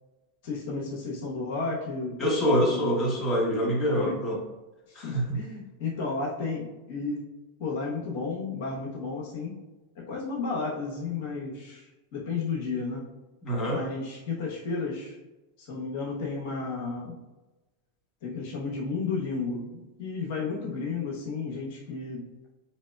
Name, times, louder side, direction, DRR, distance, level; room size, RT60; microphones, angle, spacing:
voice 1, 0.4-2.2 2.5-3.0 3.9-4.2 4.9-7.3 7.6-9.6 10.0-13.1 13.7-15.2 15.6-17.2 18.2-22.3, left 4 dB, 60° left, -3 dB, 0.9 m, -33 dB
voice 2, 2.2-4.4 4.9-5.4 13.4-13.8, equal, 25° left, -3 dB, 1.1 m, -25 dB
4.0 x 2.9 x 2.2 m, 1.1 s
figure-of-eight pair, 90°, 0 cm